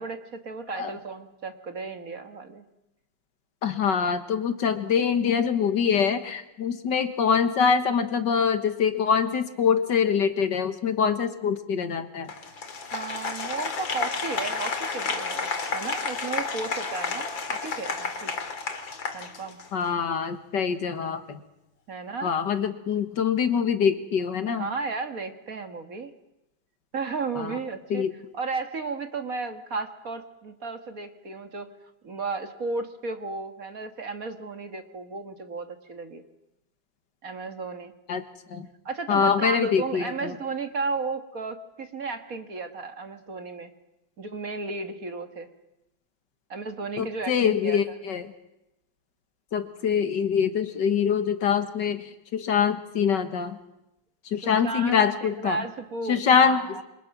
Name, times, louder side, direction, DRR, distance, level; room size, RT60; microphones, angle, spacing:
voice 1, 0.0-2.7 12.9-18.3 19.1-19.6 21.9-22.4 24.4-26.1 26.9-28.1 28.3-31.7 32.0-36.2 37.2-37.9 38.9-43.7 44.2-45.5 46.5-48.0 54.4-56.8, right 4 dB, 45° right, 7 dB, 2.0 m, -34 dB
voice 2, 3.6-12.3 19.7-21.4 22.2-24.7 27.4-27.6 27.9-28.1 38.1-38.2 38.5-38.7 39.1-40.3 47.0-48.3 49.5-52.0 52.3-53.6 54.3-55.6 56.1-56.8, left 7 dB, 65° left, 9 dB, 2.0 m, -24 dB
Applause, 12.3-19.9, left 4 dB, 80° left, 2.9 m, -31 dB
27.5 x 25.0 x 6.1 m, 0.89 s
omnidirectional pair, 2.1 m